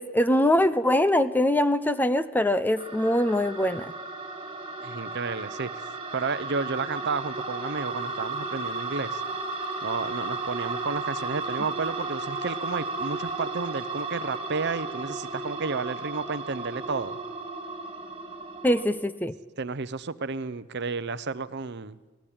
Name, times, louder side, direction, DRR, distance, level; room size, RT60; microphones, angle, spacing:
voice 1, 0.0-3.9 18.6-19.3, left 1 dB, 10° left, 12 dB, 0.6 m, -23 dB
sound 1, 2.8-18.8, right 3 dB, 25° right, 2.8 m, -34 dB
voice 2, 4.8-5.8 6.1-9.2 9.8-17.2 19.6-22.0, right 4 dB, 55° right, 14 dB, 0.8 m, -32 dB
23.5 x 18.0 x 8.8 m, 1.2 s
head